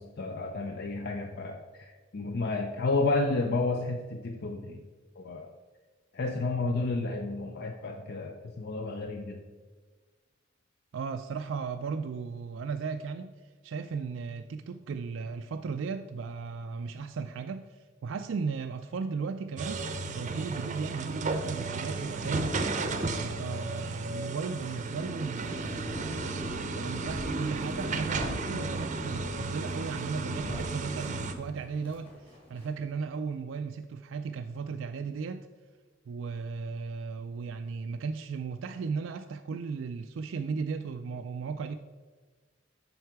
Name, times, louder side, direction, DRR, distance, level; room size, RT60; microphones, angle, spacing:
voice 1, 0.0-4.8 5.2-5.5 6.1-9.4, left 3 dB, 55° left, 4 dB, 0.5 m, -31 dB
voice 2, 10.9-13.3 13.6-19.8 20.1-22.8 23.2-26.3 26.7-32.1 32.5-35.5 36.1-41.8, right 5 dB, 75° right, 7 dB, 0.4 m, -36 dB
sound 1, 19.6-31.3, right 3 dB, 40° right, 0.6 m, -34 dB
sound 2, 23.6-24.5 25.2-33.0, equal, 30° left, 2.6 m, -42 dB
7.9 x 5.8 x 4.6 m, 1.4 s
head